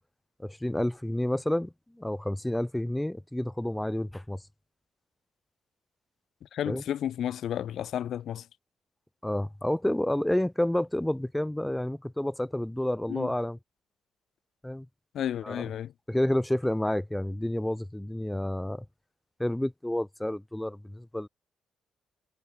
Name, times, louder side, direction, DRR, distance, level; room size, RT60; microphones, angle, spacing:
voice 1, 0.4-4.4 6.7-6.8 9.2-13.6 14.6-14.9 15.4-15.6 16.1-18.8 19.4-21.3, left 1 dB, 5° left, 0.4 m, -29 dB
voice 2, 6.4-8.5 13.1-13.3 15.1-15.9, left 10 dB, 70° left, 0.6 m, -32 dB
cardioid pair, 90°, 0 cm